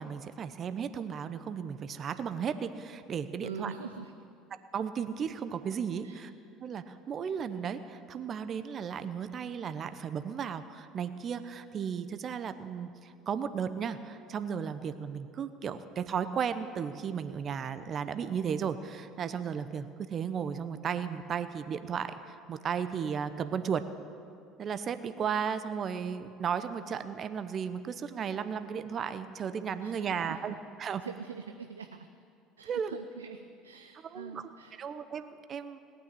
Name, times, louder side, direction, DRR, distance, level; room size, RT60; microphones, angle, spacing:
voice 1, 0.0-3.7 4.7-6.3 6.6-23.8 24.6-31.0 32.7-33.0 34.1-34.4 34.8-35.8, right 7 dB, 45° right, 11 dB, 0.8 m, -35 dB
voice 2, 3.4-4.1 6.0-6.3 29.8-30.5 31.0-32.1 32.6-34.8, right 6 dB, 85° right, 7 dB, 0.5 m, -44 dB
18.5 x 9.2 x 8.5 m, 2.4 s
hypercardioid pair, 65°, 0 cm